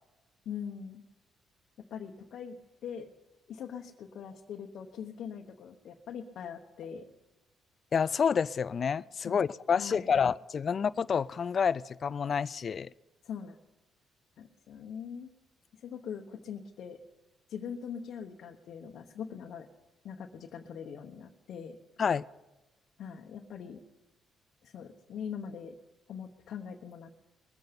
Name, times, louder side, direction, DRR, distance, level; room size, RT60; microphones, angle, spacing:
voice 1, 0.4-1.0 1.9-2.6 2.8-3.1 3.5-7.1 9.2-9.4 9.7-10.1 13.2-13.6 14.4-15.3 15.8-17.0 17.5-19.7 20.0-21.8 23.0-23.8 24.6-25.7 26.1-27.1, left 7 dB, 70° left, 1 dB, 1.1 m, -42 dB
voice 2, 7.9-12.9 22.0-22.2, left 6 dB, 50° left, 17 dB, 0.4 m, -28 dB
21.5 x 8.1 x 5.2 m, 1.0 s
cardioid pair, 90°, 0 cm